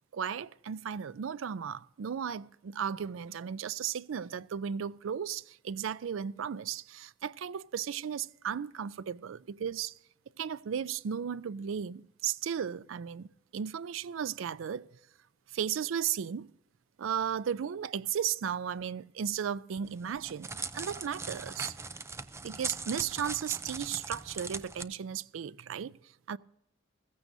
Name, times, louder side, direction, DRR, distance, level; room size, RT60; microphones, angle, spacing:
voice 1, 0.1-9.9 10.4-13.3 13.5-14.9 15.5-16.5 17.0-20.5 20.7-21.7 22.4-25.9 26.3-26.4, right 8 dB, 80° right, 0.4 m, -35 dB
Crackle, 19.9-24.8, right 4 dB, 15° right, 0.4 m, -40 dB
15.0 x 15.0 x 2.7 m
head